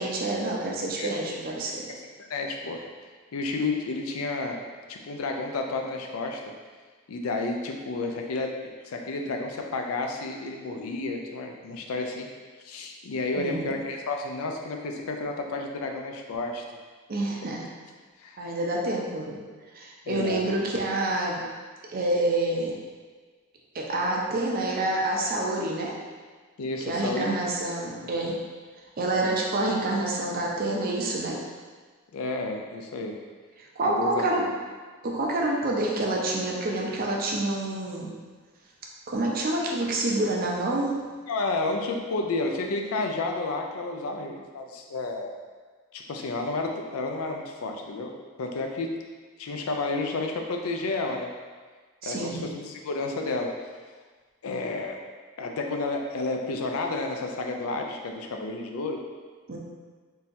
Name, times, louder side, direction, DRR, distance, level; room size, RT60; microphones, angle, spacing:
voice 1, 0.0-1.9 13.4-13.7 17.1-17.7 18.4-19.4 19.7-21.4 21.9-22.8 23.7-25.9 26.9-28.4 29.0-31.4 33.8-34.5 35.0-38.1 39.1-41.0 52.0-52.4 59.5-59.6, right 2 dB, 45° right, -1 dB, 0.5 m, -27 dB
voice 2, 2.3-2.9 3.3-4.6 4.9-6.4 7.1-8.5 8.8-12.3 12.6-16.6 18.2-18.4 20.1-20.5 26.6-27.5 32.1-33.2 33.8-34.5 41.3-45.3 45.9-48.1 48.4-48.9 49.4-51.3 52.0-53.5 54.4-55.0 55.4-59.0, left 3 dB, 80° left, 2 dB, 0.4 m, -31 dB
3.7 x 2.8 x 2.6 m, 1.4 s
head